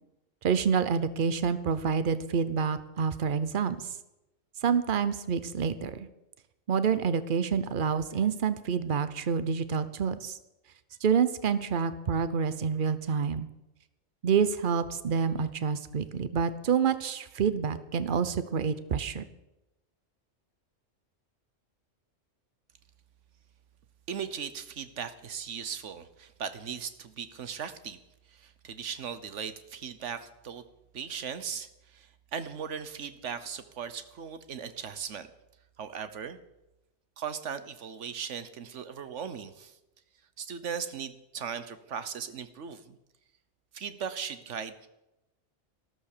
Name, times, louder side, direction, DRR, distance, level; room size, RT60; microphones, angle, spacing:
voice 1, 0.4-3.8 4.6-6.1 6.7-10.4 11.0-13.5 14.2-19.2, right 6 dB, 45° right, 13 dB, 0.9 m, -28 dB
voice 2, 24.1-28.0 28.3-30.6 30.9-35.3 35.8-36.4 37.2-39.8 40.4-43.0 43.7-44.9, right 7 dB, 70° right, 12 dB, 1.3 m, -38 dB
13.0 x 13.0 x 6.8 m, 0.94 s
omnidirectional pair, 1.3 m